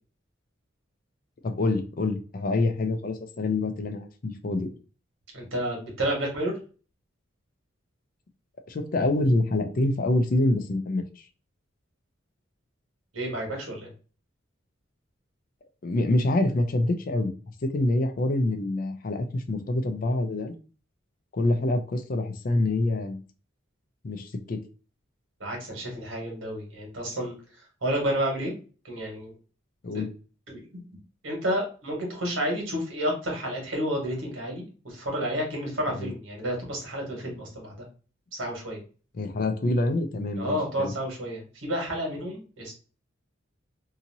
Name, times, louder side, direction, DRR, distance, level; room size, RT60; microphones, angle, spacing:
voice 1, 1.4-4.7 8.7-11.2 15.8-17.3 17.6-20.5 21.3-23.2 24.0-24.6 29.8-30.1 35.9-36.1 39.1-40.9, left 2 dB, 45° left, 7 dB, 0.4 m, -26 dB
voice 2, 5.3-6.5 13.1-13.9 25.4-28.5 28.8-29.3 29.9-30.0 30.5-30.6 31.2-37.7 38.3-38.8 40.4-42.7, equal, 75° right, 0 dB, 1.4 m, -30 dB
2.8 x 2.6 x 2.6 m, 0.37 s
head